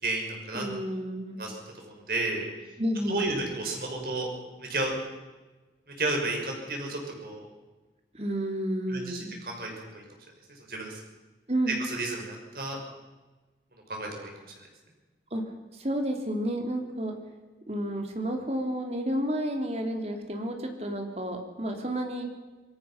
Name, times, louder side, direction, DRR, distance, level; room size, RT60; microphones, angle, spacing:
voice 1, 0.0-0.7 1.4-2.4 3.1-4.3 4.6-4.9 6.0-7.5 8.9-10.0 10.7-11.0 11.7-12.8 13.9-14.7, right 2 dB, 55° right, 1 dB, 6.0 m, -32 dB
voice 2, 0.5-1.4 2.8-3.4 8.1-9.3 11.5-11.8 15.3-15.4 15.7-17.1 17.7-22.2, right 1 dB, 35° right, 4 dB, 3.0 m, -31 dB
27.0 x 18.0 x 5.8 m, 1.2 s
head